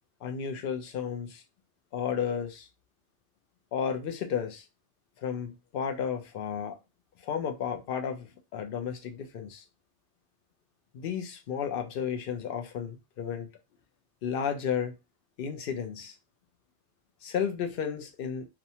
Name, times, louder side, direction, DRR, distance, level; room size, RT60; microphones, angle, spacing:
voice 1, 0.2-1.4 1.9-2.7 3.7-4.6 5.2-6.8 7.2-9.6 10.9-13.5 14.2-14.9 15.4-16.2 17.2-18.5, left 7 dB, 60° left, 0.6 m, -33 dB
2.5 x 2.2 x 2.8 m
omnidirectional pair, 1.2 m